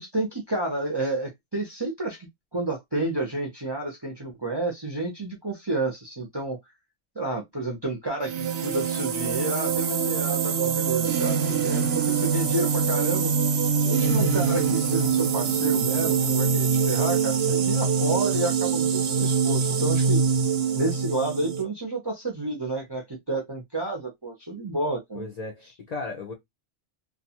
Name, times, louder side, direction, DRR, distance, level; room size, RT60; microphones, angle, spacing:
voice 1, 0.0-2.2 2.5-6.6 7.2-13.3 13.8-20.2 20.7-25.3, right 2 dB, 35° right, 0.4 m, -30 dB
sound 1, 8.2-21.6, right 6 dB, 60° right, 0.7 m, -24 dB
voice 2, 25.1-26.3, left 3 dB, 60° left, 0.4 m, -35 dB
2.4 x 2.2 x 2.8 m
omnidirectional pair, 1.3 m